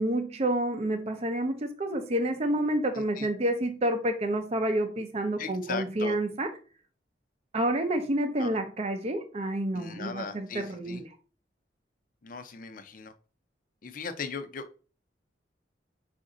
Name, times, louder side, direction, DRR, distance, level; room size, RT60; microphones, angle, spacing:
voice 1, 0.0-6.5 7.5-11.1, right 1 dB, 35° right, 0.5 m, -29 dB
voice 2, 2.9-3.3 5.4-6.2 8.4-8.6 9.7-11.0 12.2-13.1 13.8-14.8, left 5 dB, 50° left, 0.5 m, -38 dB
5.1 x 2.5 x 3.8 m
head